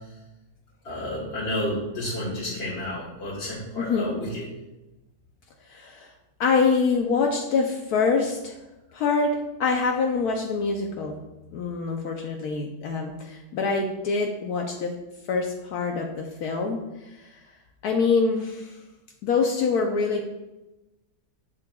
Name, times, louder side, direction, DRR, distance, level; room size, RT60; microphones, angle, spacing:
voice 1, 0.8-4.4, left 1 dB, 40° left, -7 dB, 1.5 m, -31 dB
voice 2, 3.8-4.1 5.7-6.1 6.4-8.6 8.9-11.2 11.5-14.9 15.3-17.4 17.8-18.8 19.2-20.3, left 4 dB, 75° left, 2 dB, 1.1 m, -25 dB
7.4 x 7.4 x 2.3 m, 1.0 s
omnidirectional pair, 1.8 m